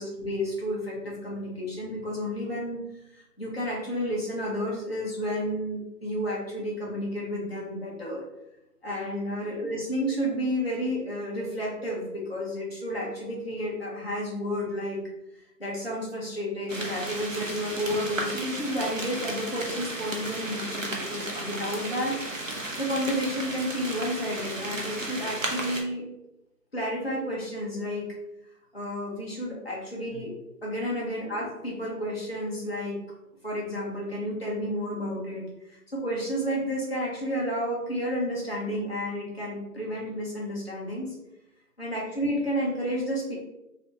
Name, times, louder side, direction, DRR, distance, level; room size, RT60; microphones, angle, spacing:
voice 1, 0.0-2.8 3.1-8.2 8.8-15.0 15.6-22.2 22.8-26.0 26.7-28.1 28.7-30.3 30.6-33.0 33.4-41.1 41.8-43.4, equal, 40° left, -5 dB, 1.1 m, -31 dB
sound 1, 16.7-25.8, right 1 dB, 55° right, 0.7 m, -34 dB
3.9 x 2.9 x 2.8 m, 0.89 s
figure-of-eight pair, 180°, 49 cm